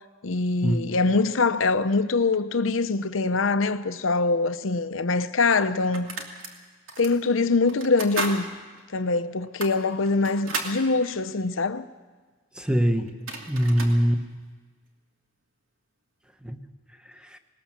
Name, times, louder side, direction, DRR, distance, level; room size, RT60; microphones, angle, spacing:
voice 1, 0.2-6.1 7.0-8.5 8.9-11.8, left 3 dB, 85° left, 0.8 m, -23 dB
sound 1, 4.7-4.8 5.5-6.5 6.9-7.1 7.7-8.4 8.8-8.9 9.4-10.8 12.8-12.9 13.1-14.0, right 3 dB, 90° right, 2.7 m, -34 dB
voice 2, 12.5-13.1 13.5-14.2 16.4-16.7 17.0-17.4, equal, 5° right, 1.1 m, -23 dB
19.5 x 19.5 x 7.4 m
head